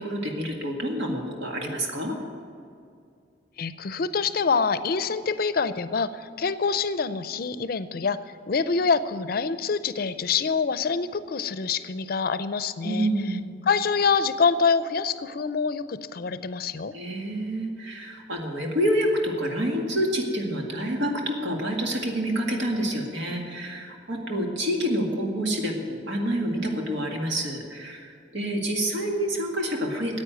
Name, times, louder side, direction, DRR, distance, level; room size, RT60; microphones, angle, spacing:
voice 1, 0.0-2.2 12.8-13.5 16.9-30.2, equal, 90° right, 1 dB, 2.0 m, -28 dB
voice 2, 3.6-8.2 8.5-13.1 13.7-16.9, left 5 dB, 55° left, 14 dB, 0.5 m, -25 dB
9.8 x 8.6 x 9.2 m, 2.3 s
head